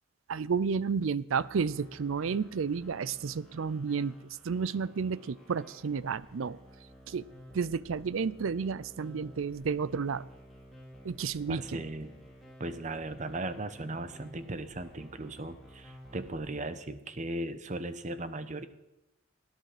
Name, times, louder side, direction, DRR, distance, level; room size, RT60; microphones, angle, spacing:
voice 1, 0.3-4.2 4.4-6.6 7.1-7.3 7.5-10.3 11.0-11.8, right 5 dB, 80° right, 19 dB, 0.5 m, -31 dB
sound 1, 1.3-16.4, equal, ahead, 3.5 m, -53 dB
voice 2, 11.5-12.1 12.6-18.7, right 2 dB, 35° right, 11 dB, 0.8 m, -37 dB
18.0 x 10.5 x 5.0 m, 0.92 s
head